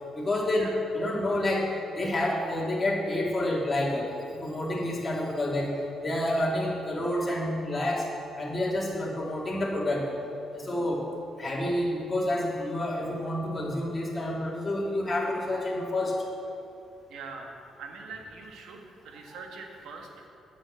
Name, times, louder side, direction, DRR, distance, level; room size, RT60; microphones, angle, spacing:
voice 1, 0.1-5.7 6.0-8.1 8.4-10.1 10.5-11.0 11.4-16.1 19.3-19.4, left 1 dB, 20° left, -5 dB, 2.7 m, -29 dB
voice 2, 17.1-17.5 17.8-20.3, right 4 dB, 80° right, 2 dB, 1.4 m, -43 dB
9.6 x 6.3 x 7.5 m, 2.7 s
cardioid pair, 100°, 0 cm